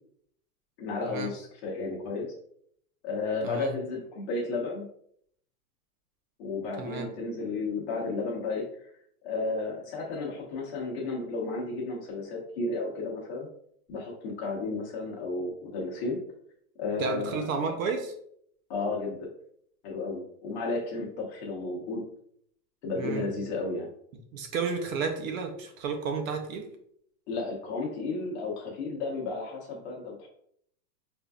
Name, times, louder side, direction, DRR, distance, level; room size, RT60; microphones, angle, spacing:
voice 1, 0.8-2.3 3.0-4.9 6.4-8.6 9.2-13.5 13.9-16.2 16.8-17.7 18.7-19.3 19.8-22.0 22.8-23.9 27.3-30.3, left 3 dB, 45° left, -2 dB, 1.0 m, -33 dB
voice 2, 17.0-18.1 23.0-23.3 24.3-26.7, right 5 dB, 55° right, 4 dB, 0.7 m, -32 dB
5.2 x 2.6 x 2.3 m, 0.68 s
supercardioid pair, 180°, 48 cm